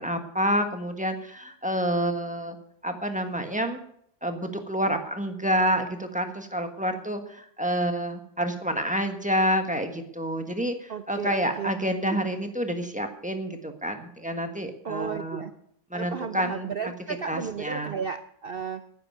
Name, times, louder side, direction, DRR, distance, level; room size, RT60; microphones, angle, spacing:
voice 1, 0.0-2.6 2.8-3.8 4.2-15.4 15.9-16.7 17.3-17.9, equal, 5° right, 5 dB, 1.2 m, -28 dB
voice 2, 10.9-11.7 12.1-12.2 14.8-15.5 15.9-18.9, right 6 dB, 80° right, 10 dB, 0.5 m, -34 dB
11.0 x 10.0 x 7.8 m, 0.67 s
omnidirectional pair, 1.8 m